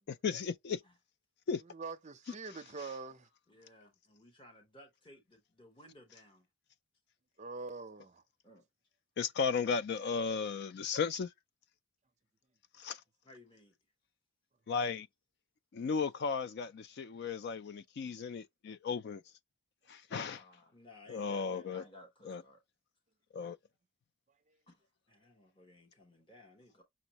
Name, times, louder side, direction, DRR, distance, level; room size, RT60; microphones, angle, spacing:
voice 1, 0.1-0.8 1.5-1.6 9.2-11.3 12.8-13.0 14.7-15.1 15.7-19.2 19.9-20.4 21.1-21.8 22.3-22.4 23.3-23.6, left 5 dB, 50° left, 0.3 m, -35 dB
voice 2, 1.6-3.3 7.4-8.2 24.5-24.6, right 4 dB, 30° right, 0.5 m, -44 dB
voice 3, 3.5-6.5 8.4-8.6 13.2-13.7 20.1-22.6 24.7-26.8, left 1 dB, 20° left, 1.0 m, -58 dB
6.2 x 2.5 x 2.9 m
head